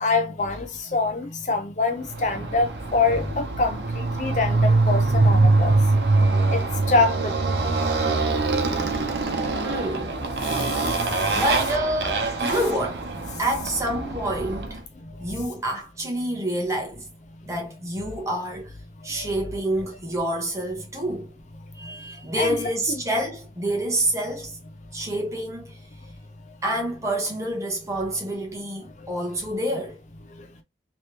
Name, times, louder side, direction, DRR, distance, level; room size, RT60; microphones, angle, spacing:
voice 1, 0.0-5.8 6.5-7.6 10.5-11.4 15.1-15.4 18.0-18.2 19.1-19.8 21.8-22.0 22.3-22.6 30.4-30.5, left 3 dB, 45° left, 0.6 m, -26 dB
Motorcycle, 2.1-14.8, right 3 dB, 80° right, 0.7 m, -23 dB
voice 2, 9.6-10.2 11.3-13.1 13.4-14.8 15.2-17.1 17.4-18.8 19.0-21.3 21.7-24.6 24.9-25.8 26.6-30.0, right 1 dB, 15° right, 1.1 m, -28 dB
3.3 x 3.1 x 2.8 m
head